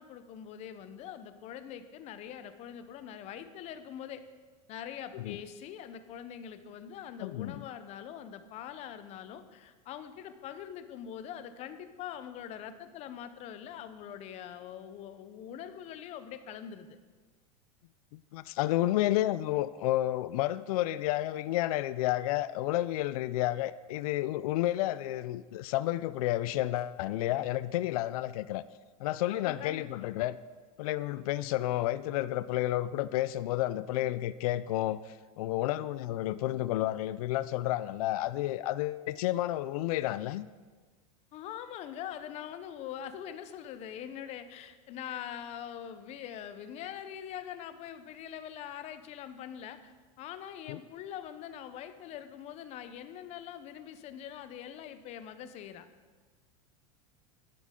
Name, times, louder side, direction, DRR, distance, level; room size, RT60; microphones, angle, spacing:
voice 1, 0.0-4.2 4.7-17.0 29.3-30.1 41.3-55.9, left 9 dB, 35° left, 11 dB, 0.7 m, -43 dB
voice 2, 7.2-7.6 18.1-28.6 29.0-30.4 30.8-40.5 50.7-50.8, left 15 dB, 70° left, 16 dB, 0.4 m, -31 dB
11.5 x 9.9 x 3.7 m, 1.4 s
supercardioid pair, 140°, 19 cm